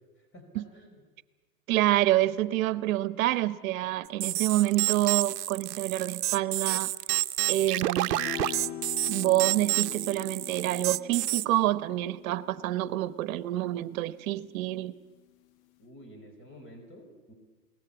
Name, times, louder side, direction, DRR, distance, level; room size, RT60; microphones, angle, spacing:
voice 1, 0.2-1.0 15.8-17.3, equal, 25° left, 5 dB, 4.7 m, -50 dB
voice 2, 1.7-6.9 7.5-8.2 9.1-14.9, right 15 dB, 55° right, 15 dB, 1.1 m, -27 dB
sound 1, 4.2-11.4, right 14 dB, 75° right, 0.8 m, -29 dB
sound 2, 8.1-14.6, left 11 dB, 55° left, 1.0 m, -43 dB
21.0 x 18.5 x 8.5 m, 1.2 s
hypercardioid pair, 115°, 48 cm